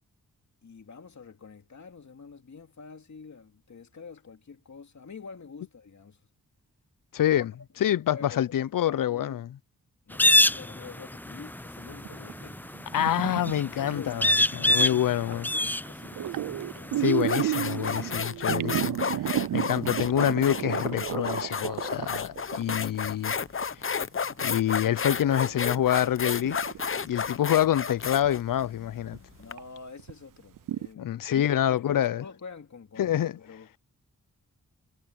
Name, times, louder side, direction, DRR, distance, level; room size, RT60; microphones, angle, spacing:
voice 1, 0.6-6.3 7.3-7.4 8.1-8.6 8.8-9.4 10.1-12.8 13.8-14.4 14.7-17.1 29.4-33.7, left 5 dB, 55° left, 2.7 m, -46 dB
voice 2, 7.1-7.5 7.8-9.5 12.9-15.5 17.0-19.0 19.2-23.4 24.4-26.7 27.0-29.2 31.0-32.2 33.0-33.3, left 11 dB, 70° left, 0.6 m, -26 dB
sound 1, 10.1-18.2, left 1 dB, 5° left, 0.5 m, -27 dB
sound 2, 11.9-14.9 15.3-15.6 15.9-23.8 24.4-24.5 24.9-27.3 27.6-27.8 28.2-28.3 29.1-29.2 29.6-29.7 30.0-30.1 30.6-30.9, right 13 dB, 70° right, 0.5 m, -32 dB
sound 3, 16.6-16.8 17.2-29.5, left 6 dB, 40° left, 0.8 m, -32 dB
cardioid pair, 60°, 33 cm